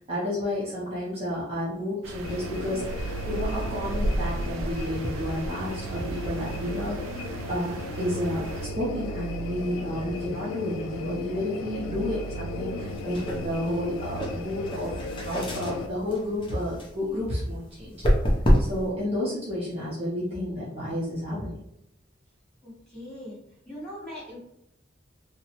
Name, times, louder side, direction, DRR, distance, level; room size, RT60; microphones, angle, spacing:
voice 1, 0.1-15.0 15.2-18.0 18.6-21.6, left 1 dB, 30° right, -7 dB, 0.6 m, -31 dB
sound 1, 2.0-8.7, right 1 dB, 85° right, 0.3 m, -34 dB
sound 2, 2.2-15.9, equal, 90° left, 0.3 m, -36 dB
sound 3, 12.8-18.9, equal, 25° left, 0.5 m, -28 dB
voice 2, 22.6-23.4 23.7-24.4, left 1 dB, 5° left, -9 dB, 1.1 m, -40 dB
2.8 x 2.1 x 2.8 m, 0.79 s
head